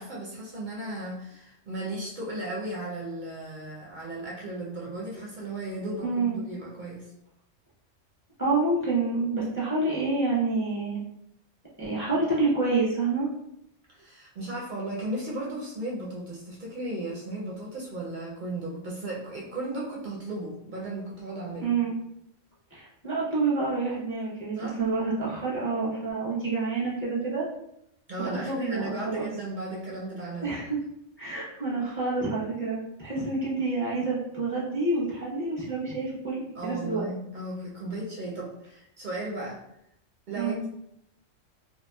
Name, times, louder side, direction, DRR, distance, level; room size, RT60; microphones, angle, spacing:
voice 1, 0.0-7.1 13.9-21.8 24.6-24.8 28.1-30.5 36.6-39.6 40.3-40.7, right 1 dB, 60° right, -4 dB, 0.5 m, -35 dB
voice 2, 6.0-6.4 8.4-11.0 11.8-13.3 21.6-22.0 22.7-27.5 28.2-29.3 30.4-30.8 31.2-37.0 40.3-40.6, right 3 dB, 15° left, -7 dB, 0.4 m, -28 dB
2.9 x 2.2 x 2.2 m, 0.78 s
omnidirectional pair, 1.3 m